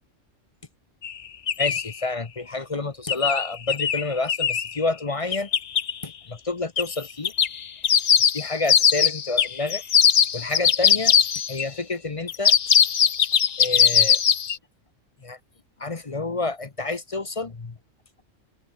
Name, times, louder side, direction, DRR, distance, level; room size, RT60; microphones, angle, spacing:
sound 1, 1.0-1.1 1.5-1.9 3.1-4.7 5.3-5.9 6.8-6.9 7.2-11.6 12.3-14.6, left 7 dB, 45° left, 0.6 m, -20 dB
voice 1, 1.6-5.5 6.0-7.3 8.3-9.9 10.3-11.1 11.5-12.5 13.6-14.2 15.2-15.4 15.8-17.8, left 3 dB, 30° left, 0.9 m, -29 dB
omnidirectional pair, 1.3 m